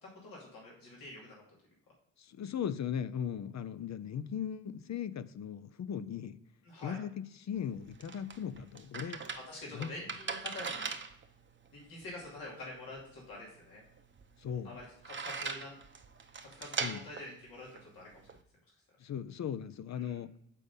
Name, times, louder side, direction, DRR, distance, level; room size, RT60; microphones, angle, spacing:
voice 1, 0.0-1.4 6.6-7.0 9.3-10.9 11.7-13.8 14.6-15.7 16.4-18.3 19.9-20.2, left 2 dB, 85° left, -4 dB, 2.4 m, -47 dB
voice 2, 2.2-6.4 6.8-9.2 9.7-9.9 14.4-14.7 16.8-17.0 19.0-20.3, left 8 dB, 55° left, 14 dB, 0.6 m, -38 dB
sound 1, 7.5-18.4, right 5 dB, 35° right, 0.8 m, -42 dB
8.4 x 4.1 x 5.3 m, 0.69 s
supercardioid pair, 50°, 34 cm